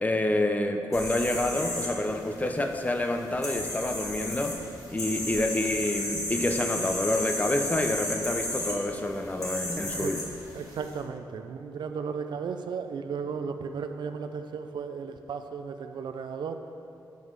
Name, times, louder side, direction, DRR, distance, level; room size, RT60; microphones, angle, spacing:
voice 1, 0.0-4.6 4.9-10.2, left 1 dB, 20° left, 5 dB, 0.6 m, -28 dB
sound 1, 0.9-10.9, left 1 dB, 45° left, 1.9 m, -34 dB
voice 2, 9.6-10.1 10.5-16.6, right 6 dB, 70° right, 7 dB, 0.4 m, -35 dB
7.7 x 5.3 x 4.8 m, 2.6 s
cardioid pair, 75°, 8 cm